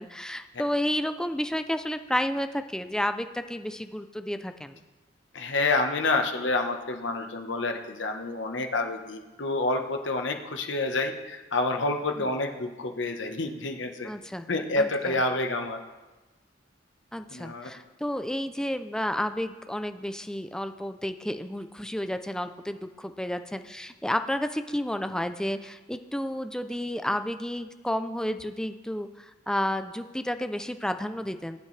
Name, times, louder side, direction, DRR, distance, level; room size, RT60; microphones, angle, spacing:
voice 1, 0.0-4.8 12.2-12.3 14.0-14.5 14.8-15.1 17.1-31.6, equal, 5° left, 9 dB, 0.5 m, -31 dB
voice 2, 5.3-14.1 14.5-15.8 17.3-17.7, left 2 dB, 80° left, 4 dB, 1.2 m, -28 dB
19.0 x 8.7 x 3.3 m, 1.2 s
head